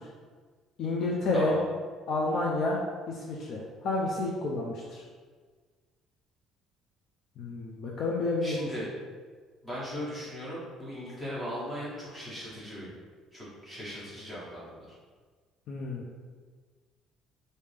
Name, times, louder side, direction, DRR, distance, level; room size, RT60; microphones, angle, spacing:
voice 1, 0.8-1.6 2.1-2.8 3.1-5.0 7.4-8.6 15.7-16.0, left 2 dB, 45° left, -3 dB, 0.4 m, -30 dB
voice 2, 8.4-8.9 9.6-12.9 13.3-14.9, equal, 5° left, -8 dB, 1.2 m, -38 dB
3.4 x 2.7 x 3.3 m, 1.5 s
cardioid pair, 165°, 0 cm